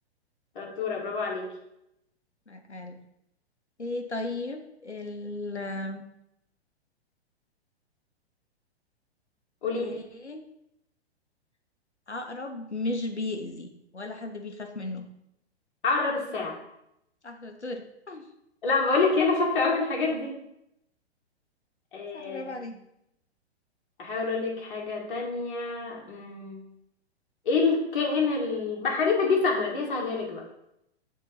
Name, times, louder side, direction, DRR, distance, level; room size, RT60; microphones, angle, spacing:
voice 1, 0.6-1.5 9.6-10.0 15.8-16.6 18.6-20.4 21.9-22.7 24.0-26.6 27.5-30.4, left 4 dB, 50° left, -1 dB, 1.8 m, -27 dB
voice 2, 2.5-3.0 3.8-6.0 9.7-10.4 12.1-15.1 17.2-18.2 22.1-22.8, left 2 dB, 90° left, 5 dB, 0.9 m, -35 dB
7.3 x 3.7 x 4.1 m, 0.82 s
figure-of-eight pair, 115°, 33 cm